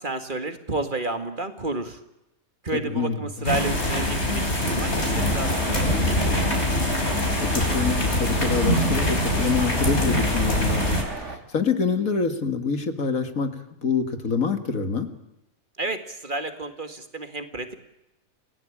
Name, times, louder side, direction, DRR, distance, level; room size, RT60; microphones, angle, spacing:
voice 1, 0.0-2.0 2.6-6.3 15.8-17.7, right 2 dB, 35° right, 8 dB, 2.1 m, -31 dB
voice 2, 2.8-3.2 7.4-15.1, left 5 dB, 75° left, 9 dB, 2.3 m, -26 dB
sound 1, 3.4-11.0, left 1 dB, 50° left, 4.9 m, -23 dB
sound 2, 5.1-11.4, right 2 dB, 55° right, 3.0 m, -35 dB
28.0 x 17.0 x 8.7 m, 0.90 s
omnidirectional pair, 1.4 m